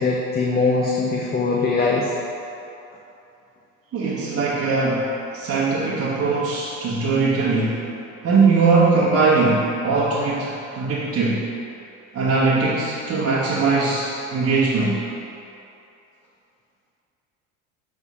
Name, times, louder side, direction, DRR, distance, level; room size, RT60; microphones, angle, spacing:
voice 1, 0.0-2.1, left 3 dB, 25° left, -3 dB, 0.8 m, -21 dB
voice 2, 3.9-5.1 5.3-7.8 8.2-11.4 12.1-15.0, right 4 dB, 35° right, -8 dB, 1.3 m, -20 dB
8.0 x 3.6 x 4.9 m, 2.7 s
hypercardioid pair, 75°, 41 cm